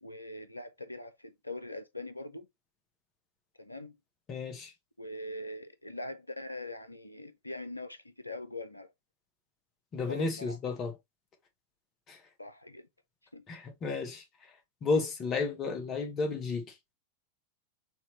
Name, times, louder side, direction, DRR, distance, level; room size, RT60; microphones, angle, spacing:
voice 1, 0.0-2.5 3.6-4.0 5.0-8.9 10.0-10.6 12.4-12.9 13.3-13.4, left 2 dB, 85° left, 0.5 m, -42 dB
voice 2, 4.3-4.7 9.9-10.9 12.1-12.2 13.5-14.2 14.8-16.7, left 4 dB, 30° left, 1.2 m, -32 dB
4.0 x 2.8 x 2.9 m
figure-of-eight pair, 90°, 0 cm